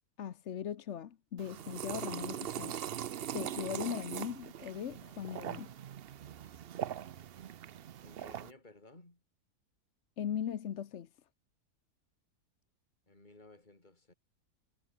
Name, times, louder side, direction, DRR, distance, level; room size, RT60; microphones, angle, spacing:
voice 1, 0.2-2.7 3.3-5.7 10.2-11.1, left 9 dB, 55° left, 1.1 m, -39 dB
sound 1, 1.4-8.5, right 10 dB, 55° right, 0.7 m, -41 dB
voice 2, 8.0-9.2 13.1-14.1, left 2 dB, 30° left, 4.3 m, -57 dB
omnidirectional pair, 1.6 m